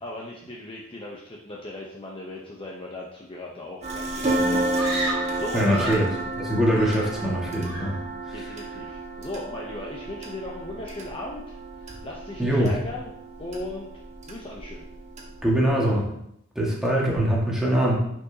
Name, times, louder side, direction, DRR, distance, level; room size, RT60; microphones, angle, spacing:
voice 1, 0.0-5.9 8.3-13.1 13.4-13.9 14.3-14.8, left 2 dB, 25° left, -2 dB, 0.8 m, -37 dB
sound 1, 3.8-15.7, right 2 dB, 35° right, 1.4 m, -32 dB
Screaming, 4.7-6.2 6.7-7.4 7.6-8.1, right 2 dB, 55° right, 1.9 m, -33 dB
voice 2, 5.5-6.1 6.4-8.0 12.4-12.7 15.4-16.1 16.6-18.0, equal, ahead, -5 dB, 1.8 m, -22 dB
10.5 x 5.5 x 2.8 m, 0.74 s
head